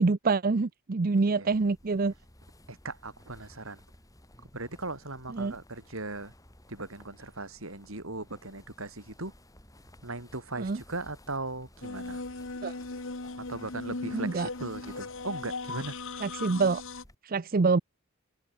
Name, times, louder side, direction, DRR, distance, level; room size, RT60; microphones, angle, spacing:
voice 1, 0.0-2.1 5.3-5.5 10.6-10.8 12.6-12.7 14.1-14.5 16.2-16.8 17.2-17.8, right 4 dB, 45° right, 0.6 m, -26 dB
voice 2, 1.1-1.5 2.7-3.8 4.4-6.3 6.7-9.3 10.0-12.2 13.4-16.0, right 2 dB, 70° right, 6.0 m, -38 dB
sound 1, 1.5-17.1, left 1 dB, 15° left, 4.2 m, -56 dB
sound 2, 11.8-17.0, left 3 dB, 65° left, 1.6 m, -38 dB
head